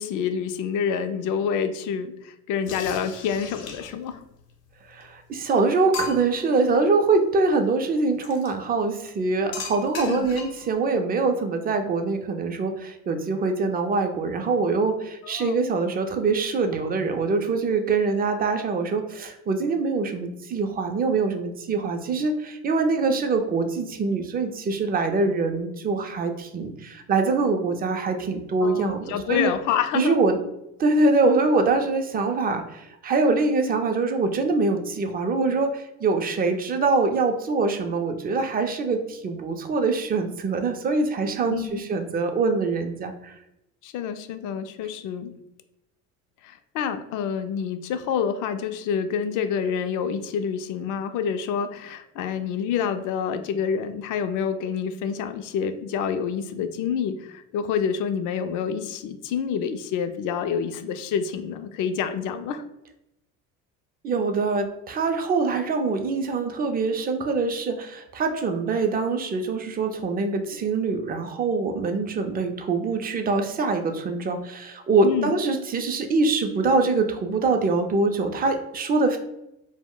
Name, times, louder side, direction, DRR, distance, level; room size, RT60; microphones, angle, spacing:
voice 1, 0.0-4.2 10.0-10.3 15.2-15.6 28.6-30.2 41.5-41.8 43.8-45.3 46.4-62.6 75.0-75.3, left 7 dB, 55° left, 9 dB, 0.4 m, -28 dB
sound 1, 2.7-4.1 5.0-5.1 5.5-5.6 5.9-6.5 8.2-8.5 9.5-10.7, left 6 dB, 70° left, 0.8 m, -36 dB
voice 2, 4.9-29.5 29.9-30.4 30.8-43.3 64.0-79.2, right 3 dB, 25° right, 6 dB, 0.4 m, -24 dB
2.2 x 2.1 x 3.6 m, 0.85 s
supercardioid pair, 80°, 37 cm